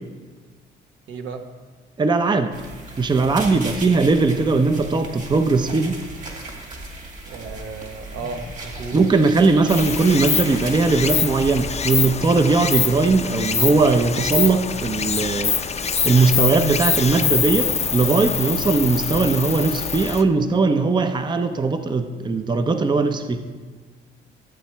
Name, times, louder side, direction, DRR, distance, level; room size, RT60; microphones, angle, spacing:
voice 1, 1.1-1.4 7.3-9.0, right 4 dB, 75° right, 5 dB, 1.2 m, -34 dB
voice 2, 2.0-2.5 3.0-6.0 8.9-23.4, right 3 dB, 20° right, 8 dB, 0.6 m, -19 dB
sound 1, 2.5-12.2, right 2 dB, 40° right, 2.2 m, -37 dB
Stream, 9.7-20.2, left 6 dB, 35° left, 0.6 m, -24 dB
14.5 x 8.1 x 3.4 m, 1.4 s
cardioid pair, 90°, 20 cm